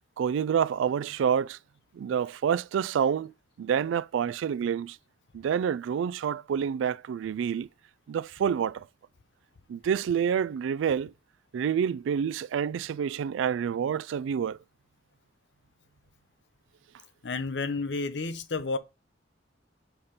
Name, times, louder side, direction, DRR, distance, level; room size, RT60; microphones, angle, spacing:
voice 1, 0.2-1.6 1.9-5.0 5.3-7.7 8.1-8.9 9.7-11.1 11.5-14.6, right 8 dB, 90° right, 0.3 m, -28 dB
voice 2, 17.2-18.8, left 3 dB, 65° left, 0.7 m, -31 dB
5.7 x 4.3 x 5.0 m
head